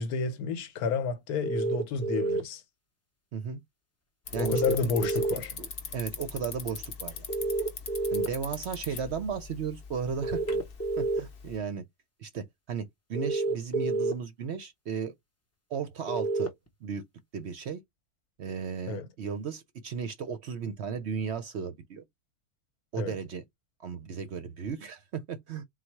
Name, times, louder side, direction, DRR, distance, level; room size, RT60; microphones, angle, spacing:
voice 1, 0.0-2.6 4.4-5.5 18.9-19.1 23.0-23.1, left 4 dB, 80° left, 1.2 m, -30 dB
sound 1, 1.4-2.4 4.4-5.3 7.3-8.3 10.2-11.2 13.1-14.1 16.1-16.5, right 3 dB, 15° left, 0.5 m, -29 dB
Bicycle, 4.3-11.6, left 6 dB, 45° left, 0.9 m, -41 dB
voice 2, 5.6-7.3 8.1-10.4 11.0-11.8 12.2-15.1 15.7-16.5 16.8-17.0 17.3-17.8 18.4-22.0 22.9-23.4 23.8-25.6, right 6 dB, 60° right, 0.7 m, -35 dB
4.0 x 2.3 x 4.5 m
omnidirectional pair, 1.6 m